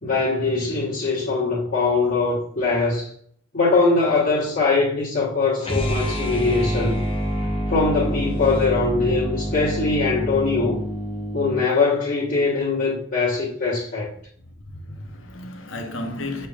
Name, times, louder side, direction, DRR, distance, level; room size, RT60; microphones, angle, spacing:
voice 1, 0.0-3.1 3.5-7.0 7.7-10.8 11.3-14.1, left 3 dB, 45° left, 1.4 m, -22 dB
sound 1, 5.6-11.7, equal, 30° left, 0.7 m, -27 dB
voice 2, 14.5-16.5, left 1 dB, 70° left, 0.9 m, -33 dB
6.6 x 3.3 x 2.4 m
head